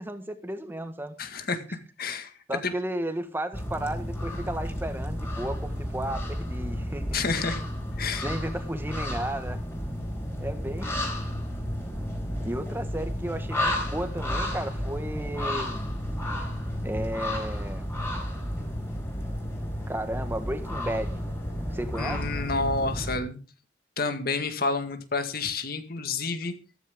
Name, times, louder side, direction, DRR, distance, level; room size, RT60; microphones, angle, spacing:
voice 1, 0.0-1.2 2.5-7.2 8.2-9.6 10.4-11.1 12.4-15.9 16.8-17.9 19.9-21.2 21.7-22.2, right 1 dB, 10° right, 1.6 m, -34 dB
voice 2, 1.2-1.6 2.0-2.3 2.6-2.7 7.1-7.6 8.0-8.3 22.0-23.4 24.0-26.5, left 4 dB, 55° left, 1.9 m, -29 dB
sound 1, 3.5-23.2, equal, 15° left, 4.3 m, -32 dB
14.0 x 14.0 x 3.7 m
head